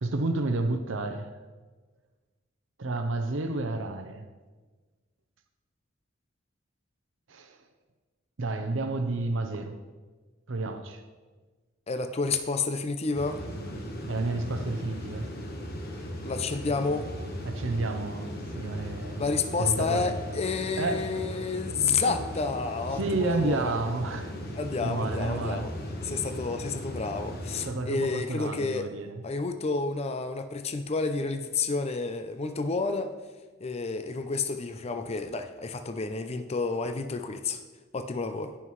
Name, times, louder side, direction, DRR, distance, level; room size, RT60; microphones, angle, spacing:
voice 1, 0.0-1.3 2.8-4.2 7.3-7.6 8.4-9.8 10.5-11.0 14.1-15.3 17.4-19.2 19.6-20.2 20.8-21.1 22.1-22.2 22.9-24.3 24.8-25.7 27.6-29.2, right 2 dB, 70° right, 0.7 m, -30 dB
voice 2, 11.9-13.4 16.2-17.1 19.2-23.8 24.6-25.7 26.0-28.9 29.2-33.1 33.6-37.6 37.9-38.6, left 4 dB, 30° left, 0.5 m, -30 dB
sound 1, 13.1-27.7, equal, 50° left, 1.2 m, -37 dB
15.0 x 5.7 x 3.1 m
head